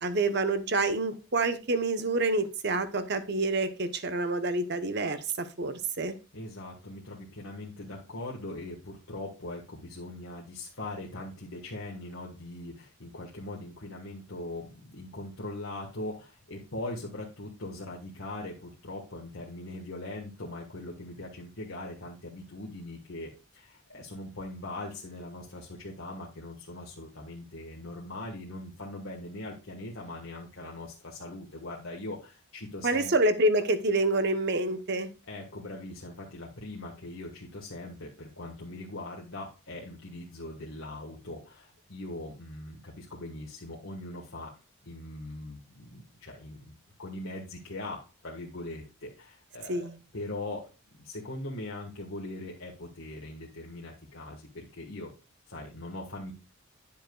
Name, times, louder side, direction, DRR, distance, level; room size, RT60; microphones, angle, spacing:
voice 1, 0.0-6.1 32.8-35.1 49.7-49.9, right 2 dB, 50° right, 11 dB, 0.8 m, -27 dB
voice 2, 6.3-33.1 35.2-44.6 44.8-46.7 47.0-49.9 50.1-55.1 55.5-56.3, left 2 dB, 70° left, -3 dB, 1.5 m, -41 dB
10.0 x 7.2 x 2.3 m, 0.30 s
head